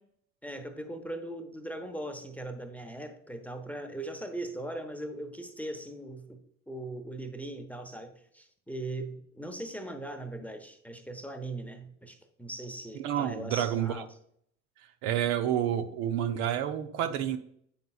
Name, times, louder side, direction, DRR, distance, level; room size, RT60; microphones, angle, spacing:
voice 1, 0.4-6.4 6.7-14.1, right 1 dB, 5° left, 0.8 m, -39 dB
voice 2, 13.0-14.0 15.0-17.4, right 10 dB, 60° right, 0.7 m, -29 dB
8.5 x 5.3 x 2.3 m
figure-of-eight pair, 60°, 42 cm